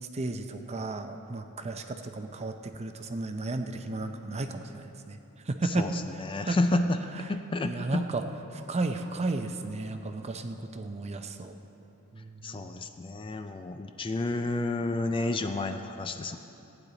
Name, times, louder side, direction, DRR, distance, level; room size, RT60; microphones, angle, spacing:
voice 1, 0.1-5.2 5.4-5.9 6.1-6.8 7.6-8.2 8.5-11.5 12.1-12.7, right 2 dB, 30° right, 7 dB, 0.5 m, -34 dB
voice 2, 5.6-7.0 7.3-8.1 12.4-16.4, left 2 dB, 25° left, 7 dB, 0.4 m, -30 dB
15.0 x 9.8 x 4.0 m, 2.9 s
head